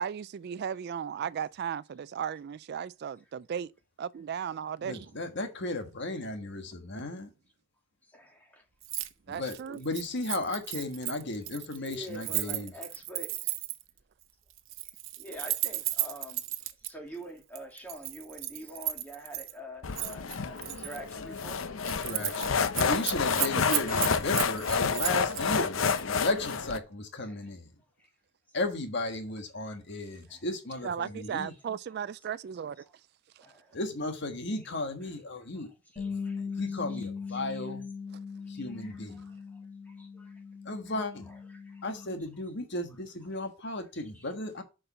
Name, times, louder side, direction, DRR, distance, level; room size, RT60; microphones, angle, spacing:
voice 1, 0.0-3.7 4.0-5.1 9.3-9.8 23.3-23.5 23.9-24.0 30.8-32.9 33.4-33.5, right 8 dB, 55° right, 0.3 m, -36 dB
voice 2, 4.8-7.3 9.3-12.7 21.8-27.7 28.5-31.5 33.7-35.7 36.0-36.1 36.6-37.8 38.5-39.2 40.6-41.3 41.8-44.6, left 2 dB, 60° left, 1.4 m, -35 dB
voice 3, 8.1-8.6 11.8-13.3 15.2-16.4 16.8-21.6 27.2-27.5 28.0-28.1 30.3-30.5 33.4-33.8 35.0-35.1 35.5-37.7 38.4-39.6 39.8-40.4 41.3-42.1 43.9-44.3, equal, 10° left, 2.6 m, -47 dB
Keys jangling, 8.8-9.1 9.4-13.9 14.6-16.9 17.6-19.5 20.0-21.0 21.4-21.5 21.8-22.5 22.7-25.4 25.8-26.0, right 15 dB, 75° right, 0.8 m, -34 dB
sound 1, 19.8-26.8, left 5 dB, 85° left, 0.7 m, -29 dB
Bass guitar, 36.0-42.2, left 5 dB, 25° left, 2.6 m, -39 dB
6.9 x 5.4 x 5.5 m
head